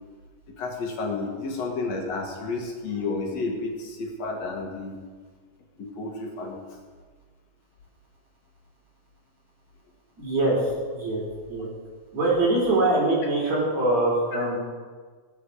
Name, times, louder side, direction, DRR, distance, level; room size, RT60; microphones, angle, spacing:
voice 1, 0.6-5.0 5.8-6.6, left 3 dB, 65° left, 1 dB, 2.8 m, -31 dB
voice 2, 10.2-11.7 12.1-14.6, right 2 dB, 65° right, -3 dB, 5.0 m, -23 dB
19.0 x 8.5 x 4.9 m, 1.5 s
omnidirectional pair, 3.3 m